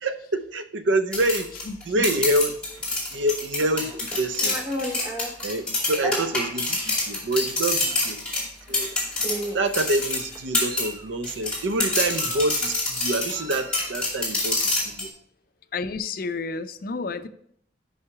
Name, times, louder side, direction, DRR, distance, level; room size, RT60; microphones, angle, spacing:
voice 1, 0.0-1.5 1.9-2.6 3.1-4.6 5.4-8.2 8.7-8.9 9.5-15.1, right 1 dB, 75° right, 10 dB, 0.6 m, -26 dB
sound 1, 1.1-10.9 11.2-15.1, left 2 dB, 5° left, 2.4 m, -27 dB
voice 2, 1.7-2.0 6.7-6.8 15.7-17.3, left 4 dB, 50° left, 12 dB, 0.4 m, -31 dB
Meow, 3.7-5.3 6.0-6.2 7.0-7.1 7.5-7.7 8.7-8.9 9.2-9.8 10.4-11.1 11.9-12.6 13.3-14.0, right 1 dB, 20° right, 0.8 m, -34 dB
5.8 x 5.6 x 4.7 m, 0.65 s
head